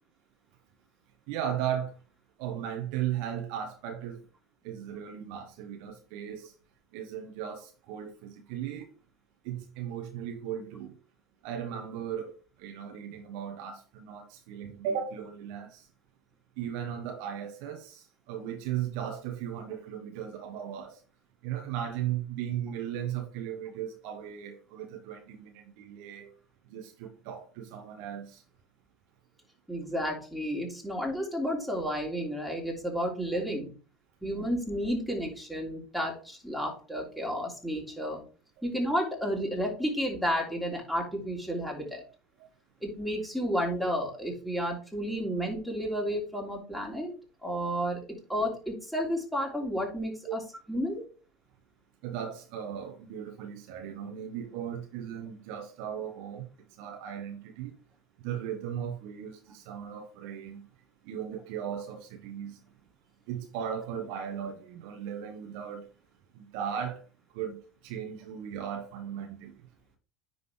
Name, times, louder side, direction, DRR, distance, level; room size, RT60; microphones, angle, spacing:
voice 1, 1.3-1.9 2.4-4.2 4.6-6.5 6.9-8.9 9.4-10.9 11.4-15.9 16.6-21.0 21.4-26.3 26.7-28.4 50.3-50.4 52.0-56.5 56.8-57.7 58.2-60.6 61.0-62.6 63.3-65.9 66.3-67.0 67.3-69.6, right 9 dB, 65° right, 1.1 m, -37 dB
voice 2, 29.7-33.7 34.2-38.2 38.6-42.0 42.8-47.1 47.4-48.0 48.3-50.4 50.7-51.1, equal, ahead, 3.0 m, -31 dB
9.9 x 4.0 x 3.2 m
hypercardioid pair, 75°, 0 cm